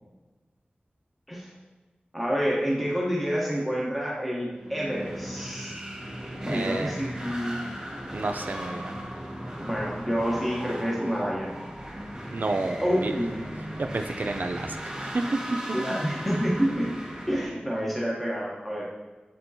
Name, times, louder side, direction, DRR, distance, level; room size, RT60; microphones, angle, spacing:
voice 1, 2.1-5.7 6.4-7.6 9.6-11.5 12.8-13.4 15.7-16.9 17.3-18.9, equal, 5° left, -5 dB, 1.0 m, -28 dB
sound 1, 4.5-17.4, equal, 20° right, 1.9 m, -37 dB
voice 2, 6.5-7.0 8.1-8.9 12.3-13.1 13.8-15.2, right 3 dB, 65° right, 6 dB, 0.4 m, -31 dB
8.4 x 4.3 x 2.7 m, 1.2 s
wide cardioid pair, 60°, 3 cm